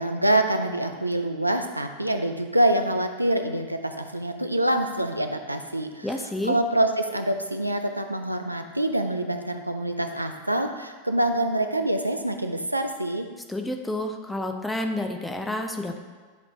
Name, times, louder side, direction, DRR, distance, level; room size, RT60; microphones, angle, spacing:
voice 1, 0.0-6.1 6.4-13.3, right 1 dB, 85° right, 6 dB, 0.4 m, -25 dB
voice 2, 6.0-6.6 13.5-16.0, left 1 dB, 5° left, 4 dB, 0.5 m, -29 dB
9.8 x 3.3 x 4.1 m, 1.5 s
figure-of-eight pair, 90°, 0 cm